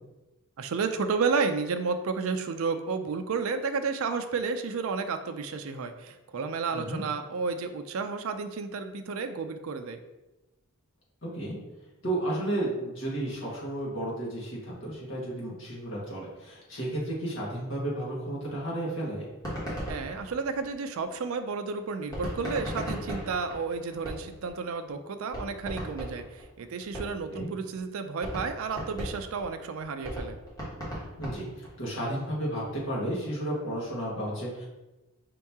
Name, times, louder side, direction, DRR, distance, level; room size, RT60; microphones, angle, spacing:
voice 1, 0.6-10.0 19.9-30.4, right 4 dB, 70° right, 7 dB, 0.4 m, -31 dB
voice 2, 6.7-7.0 11.2-11.5 12.0-19.2 27.3-27.5 31.2-34.7, right 1 dB, 55° left, -5 dB, 1.5 m, -33 dB
sound 1, 19.4-21.1 22.1-24.5 24.9-25.0 25.3-27.4 27.8-27.9 28.2-31.8, equal, 15° left, 1.3 m, -36 dB
5.3 x 2.8 x 3.5 m, 1.0 s
head